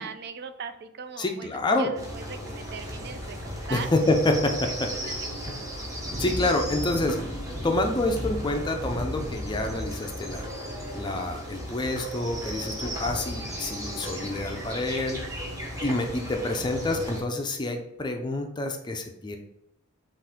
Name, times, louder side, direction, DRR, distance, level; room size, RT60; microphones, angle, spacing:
voice 1, 0.0-3.9 4.4-4.5 4.9-5.4, right 6 dB, 50° right, 9 dB, 0.4 m, -40 dB
voice 2, 1.2-1.9 3.7-5.2 6.2-7.4 7.6-10.5 10.9-15.2 15.8-19.4, left 2 dB, 20° left, 4 dB, 0.4 m, -27 dB
sound 1, 1.9-17.2, equal, 15° right, 0.8 m, -35 dB
5.7 x 2.5 x 3.6 m, 0.81 s
head